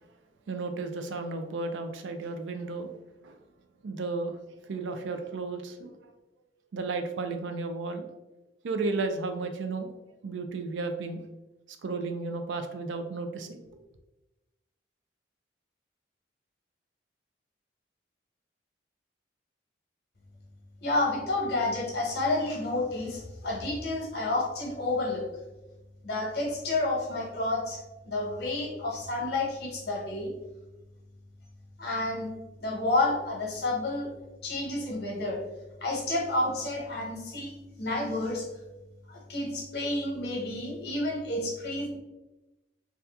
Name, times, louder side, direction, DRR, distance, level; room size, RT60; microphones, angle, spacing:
voice 1, 0.5-2.9 3.2-3.4 3.8-4.3 4.7-5.9 6.7-8.1 8.6-9.9 10.2-11.2 11.8-13.6, right 3 dB, 80° right, 7 dB, 0.4 m, -33 dB
voice 2, 20.8-25.2 26.0-27.8 28.0-30.3 31.8-32.3 32.6-34.1 34.4-35.4 35.8-37.5 37.8-38.4 39.1-42.0, left 2 dB, 55° left, -2 dB, 0.9 m, -30 dB
2.7 x 2.3 x 3.3 m, 1.0 s
head